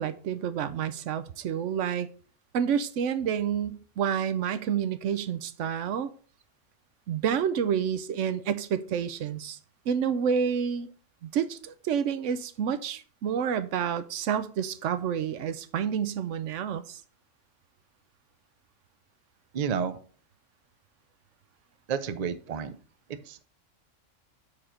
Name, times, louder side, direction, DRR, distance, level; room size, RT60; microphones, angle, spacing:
voice 1, 0.0-2.1 2.5-6.1 7.1-9.6 9.9-10.9 11.2-17.0, right 8 dB, 75° right, 0.9 m, -29 dB
voice 2, 19.5-20.0 21.9-22.8 23.3-23.4, right 7 dB, 55° right, 0.5 m, -30 dB
5.8 x 4.7 x 5.0 m
omnidirectional pair, 1.3 m